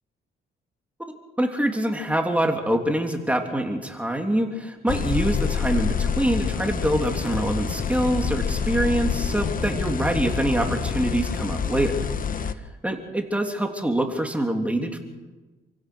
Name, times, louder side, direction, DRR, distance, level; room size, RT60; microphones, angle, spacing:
voice 1, 1.4-12.0 12.4-15.0, right 1 dB, 5° right, 3 dB, 3.2 m, -25 dB
sound 1, 4.9-12.5, left 6 dB, 45° left, 1.3 m, -27 dB
28.5 x 16.5 x 6.4 m, 1.2 s
cardioid pair, 90°, 20 cm